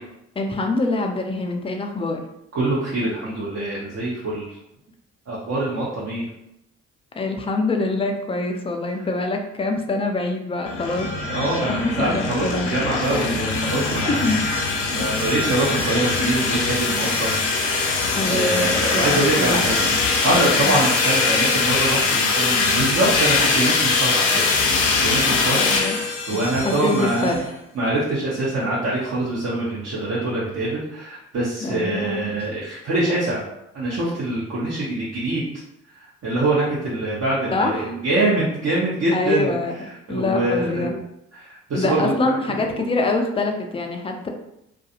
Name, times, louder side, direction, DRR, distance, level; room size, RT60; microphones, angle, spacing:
voice 1, 0.4-2.2 7.1-12.7 14.1-14.4 18.2-20.0 20.6-20.9 25.5-26.0 26.5-27.4 31.6-32.5 37.5-37.9 39.1-39.7 40.1-41.0 41.7-44.3, left 2 dB, 15° left, 3 dB, 0.4 m, -25 dB
voice 2, 2.5-4.5 5.3-6.2 11.3-14.3 14.9-17.4 18.3-19.8 20.2-24.3 25.0-25.6 26.3-27.4 27.8-33.4 33.7-35.4 36.2-39.5 40.1-40.9 41.7-42.1, right 2 dB, 45° right, -7 dB, 0.8 m, -24 dB
sound 1, 10.7-27.4, left 4 dB, 85° left, 0.5 m, -22 dB
2.4 x 2.3 x 2.8 m, 0.84 s
hypercardioid pair, 50°, 36 cm